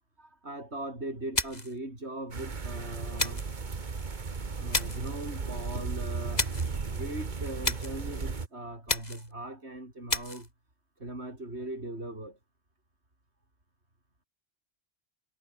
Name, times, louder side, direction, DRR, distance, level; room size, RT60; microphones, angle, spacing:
voice 1, 0.2-3.4 4.6-10.5 11.0-12.4, right 1 dB, 75° right, 7.1 m, -39 dB
sound 1, 1.3-1.8 3.2-3.6 4.7-5.1 6.4-6.7 7.6-8.0 8.9-9.3 10.1-10.5, left 2 dB, 40° left, 3.2 m, -31 dB
sound 2, 2.3-8.5, right 4 dB, 45° right, 1.6 m, -35 dB
omnidirectional pair, 1.1 m